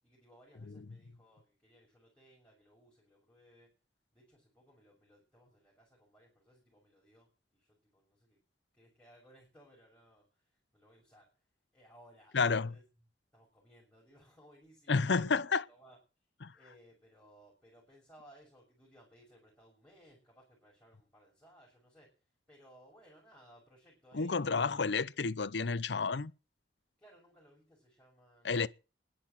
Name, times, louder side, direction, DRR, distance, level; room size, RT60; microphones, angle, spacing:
voice 1, 0.0-3.7 4.1-8.4 8.7-11.4 11.7-12.8 13.3-16.0 16.5-25.7 27.0-28.7, equal, 5° left, 6.4 m, -62 dB
voice 2, 12.3-12.7 14.9-15.6 16.4-16.5 24.1-26.3 28.4-28.7, left 4 dB, 70° left, 0.7 m, -30 dB
12.0 x 10.5 x 7.6 m
head